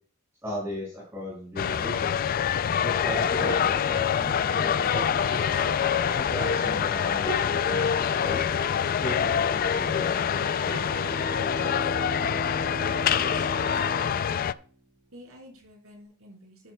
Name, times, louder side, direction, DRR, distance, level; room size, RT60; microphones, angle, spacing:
voice 1, 0.4-2.2 2.8-5.6 6.1-8.4 9.0-10.3, equal, 10° right, -6 dB, 5.3 m, -37 dB
sound 1, 1.6-14.5, left 8 dB, 40° left, 0.3 m, -25 dB
sound 2, 3.4-11.2, right 1 dB, 20° left, 5.7 m, -40 dB
Bowed string instrument, 10.3-15.3, right 5 dB, 35° right, 1.8 m, -40 dB
voice 2, 13.1-14.2 15.1-16.7, equal, 75° right, 0 dB, 4.4 m, -50 dB
11.5 x 11.5 x 2.2 m, 0.43 s
head